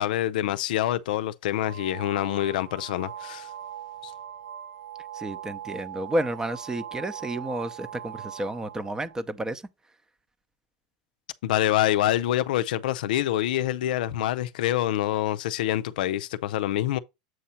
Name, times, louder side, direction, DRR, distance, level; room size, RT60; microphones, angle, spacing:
voice 1, 0.0-3.5 4.0-4.1 11.4-17.0, left 13 dB, 80° left, 0.5 m, -26 dB
sound 1, 1.6-9.2, right 10 dB, 85° right, 1.3 m, -41 dB
voice 2, 5.1-9.6, right 1 dB, 15° right, 0.7 m, -31 dB
7.7 x 2.8 x 5.7 m
supercardioid pair, 120°, 5 cm